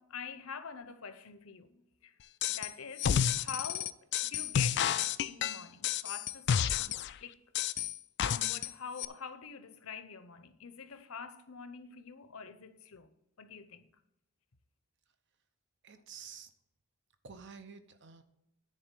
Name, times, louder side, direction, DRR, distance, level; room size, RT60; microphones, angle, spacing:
voice 1, 0.0-2.1 2.5-3.9 4.3-7.4 8.3-13.1 13.4-13.9, left 6 dB, 70° left, 0.8 m, -45 dB
sound 1, 2.4-2.7 3.0-7.1 7.5-8.7 9.0-9.1, left 9 dB, 50° left, 0.3 m, -30 dB
voice 2, 15.8-16.5 17.2-18.2, right 6 dB, 55° right, 0.8 m, -50 dB
10.0 x 4.0 x 7.6 m
head